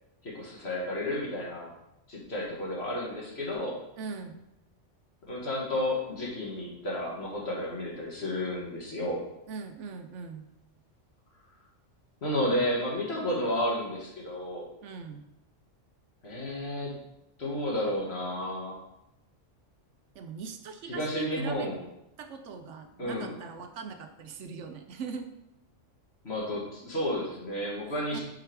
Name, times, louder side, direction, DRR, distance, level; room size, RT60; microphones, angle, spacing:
voice 1, 0.2-1.7 2.1-3.8 5.3-9.2 12.2-14.7 16.2-17.0 17.4-18.8 20.8-21.8 23.0-23.4 26.2-28.2, left 1 dB, 55° left, -3 dB, 1.9 m, -32 dB
voice 2, 4.0-4.4 9.5-10.5 14.8-15.3 20.1-21.7 22.2-25.3 28.1-28.2, right 5 dB, 75° right, 7 dB, 1.0 m, -41 dB
4.9 x 4.8 x 4.5 m, 0.86 s
omnidirectional pair, 1.3 m